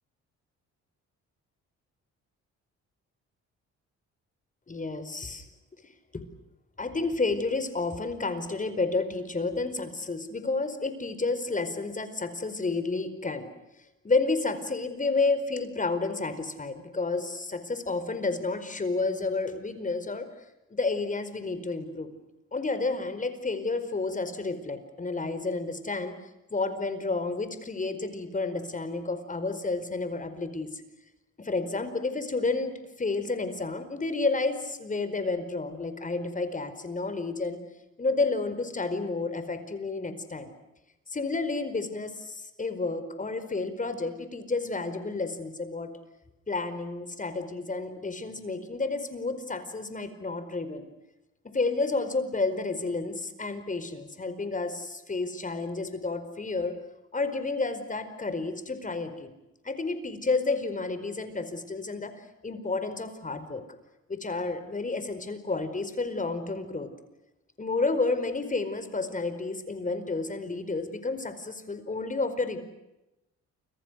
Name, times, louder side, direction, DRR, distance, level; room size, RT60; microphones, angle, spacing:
voice 1, 4.7-5.4 6.1-6.2 6.8-13.5 14.0-20.3 20.7-22.1 22.5-26.1 26.5-30.8 31.4-37.6 38.0-40.5 41.1-45.9 46.5-50.8 51.5-56.7 57.1-59.3 59.6-62.1 62.4-63.6 64.1-66.9 67.6-72.6, left 3 dB, 25° left, 10 dB, 4.8 m, -30 dB
29.5 x 26.0 x 6.5 m, 0.94 s
cardioid pair, 90°, 30 cm